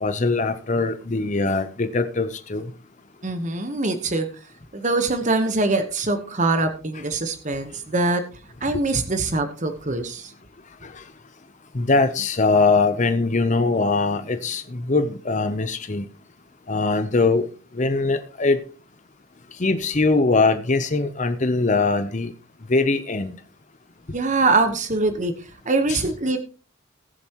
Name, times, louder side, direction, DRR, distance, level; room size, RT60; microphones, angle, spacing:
voice 1, 0.0-2.6 8.7-8.8 10.8-10.9 11.7-16.1 16.7-17.5 17.7-18.6 19.6-22.3 22.7-23.3 25.9-26.0, left 3 dB, 35° left, 0.7 m, -21 dB
voice 2, 3.2-4.3 4.7-8.2 8.6-10.3 24.1-26.4, right 3 dB, 35° right, 1.1 m, -23 dB
20.0 x 7.0 x 3.0 m
head